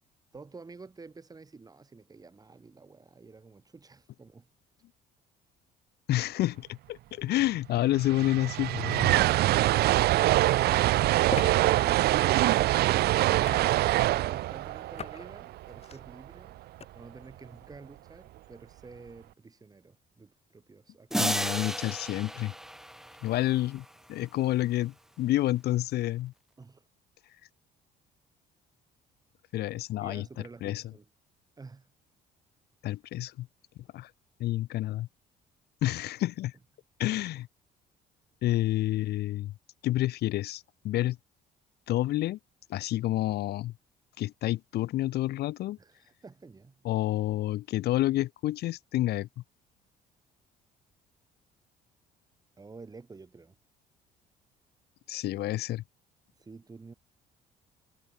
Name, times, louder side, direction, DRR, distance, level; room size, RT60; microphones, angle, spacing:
voice 1, 0.3-4.5 13.5-16.6 16.9-21.1 26.6-26.9 30.0-31.1 31.6-31.9 45.8-46.8 52.6-53.6 56.4-56.9, right 4 dB, 20° right, 3.7 m, -50 dB
voice 2, 6.1-9.2 21.1-22.5 23.2-26.3 29.5-30.2 30.6-30.8 32.8-33.5 33.9-34.1 34.4-35.1 35.8-36.5 37.0-37.5 38.4-39.5 39.8-41.2 41.9-42.4 42.7-43.7 44.2-45.8 46.8-49.3 55.1-55.8, left 15 dB, 70° left, 1.5 m, -29 dB
sound 1, 7.5-7.6 7.8-16.0, right 16 dB, 70° right, 0.8 m, -24 dB
sound 2, 11.3-11.5 13.4-13.9 15.0-15.3 15.7-16.0 16.8-16.9, left 7 dB, 35° left, 2.5 m, -38 dB
sound 3, 21.1-23.9, right 1 dB, ahead, 0.6 m, -33 dB
cardioid pair, 110°, 17 cm